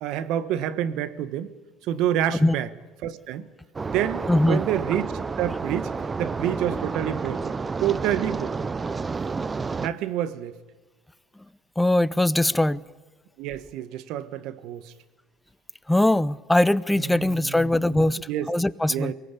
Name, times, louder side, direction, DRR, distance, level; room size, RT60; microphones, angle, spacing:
voice 1, 0.0-1.5 1.8-2.7 3.0-3.5 3.9-5.1 5.4-5.9 6.2-8.7 9.8-10.6 13.4-14.9 16.9-18.5 18.9-19.1, right 11 dB, 70° right, 1.4 m, -28 dB
sound 1, 3.7-9.9, right 4 dB, 25° right, 0.8 m, -30 dB
voice 2, 4.3-4.6 11.8-12.8 15.9-18.2 18.5-19.1, left 1 dB, 5° left, 0.7 m, -21 dB
23.5 x 18.5 x 8.5 m
supercardioid pair, 80°, 0 cm